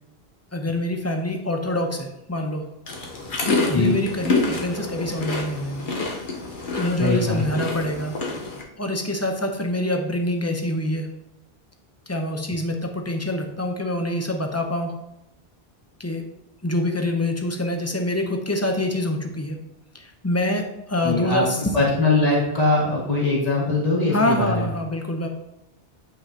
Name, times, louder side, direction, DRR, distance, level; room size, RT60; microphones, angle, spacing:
voice 1, 0.5-2.6 3.4-5.9 6.8-8.2 8.8-11.1 12.1-14.9 16.0-16.2 16.6-19.6 19.9-21.8 24.1-25.3, left 1 dB, 15° left, 3 dB, 0.7 m, -25 dB
sound 1, 2.9-8.6, left 3 dB, 55° left, 1.2 m, -28 dB
voice 2, 7.0-7.5 21.0-21.4 21.7-24.6, left 2 dB, 35° left, -6 dB, 2.0 m, -21 dB
8.9 x 5.2 x 2.9 m, 0.90 s
omnidirectional pair, 1.1 m